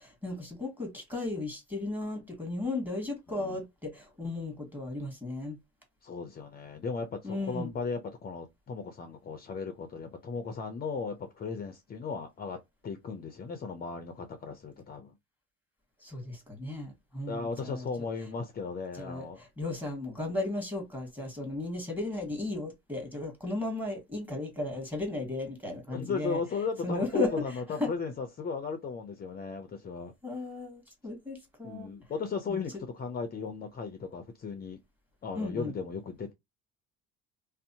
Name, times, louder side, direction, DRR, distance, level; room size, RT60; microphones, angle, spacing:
voice 1, 0.0-5.6 7.2-7.7 16.0-17.9 18.9-26.4 26.8-27.9 30.2-31.9 32.5-32.8 35.4-35.7, left 2 dB, 5° right, 1.3 m, -35 dB
voice 2, 3.3-3.6 6.0-12.6 12.8-15.1 17.3-19.4 25.9-30.1 31.6-34.8 35.2-36.3, left 5 dB, 30° left, 0.5 m, -36 dB
2.6 x 2.0 x 2.7 m
cardioid pair, 90°, 32 cm